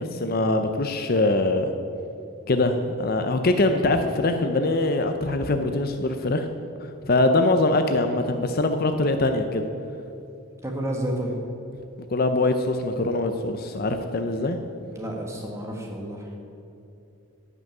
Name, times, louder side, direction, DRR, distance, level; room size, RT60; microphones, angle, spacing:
voice 1, 0.0-1.7 2.5-6.4 7.0-9.6 12.1-14.6, left 2 dB, 45° left, 7 dB, 0.6 m, -23 dB
voice 2, 10.6-11.3 14.9-16.4, right 1 dB, 15° right, 0 dB, 1.5 m, -30 dB
11.0 x 6.2 x 8.9 m, 2.7 s
head